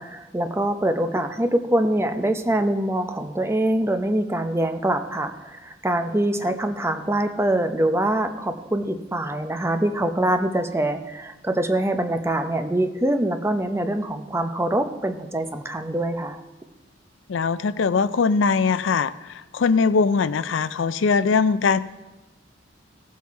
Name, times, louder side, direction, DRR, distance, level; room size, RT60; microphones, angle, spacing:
voice 1, 0.0-16.4, right 1 dB, 15° right, 7 dB, 0.7 m, -24 dB
voice 2, 17.3-19.1 19.5-21.8, left 5 dB, 80° left, 15 dB, 0.4 m, -21 dB
17.0 x 7.4 x 4.6 m, 1.1 s
head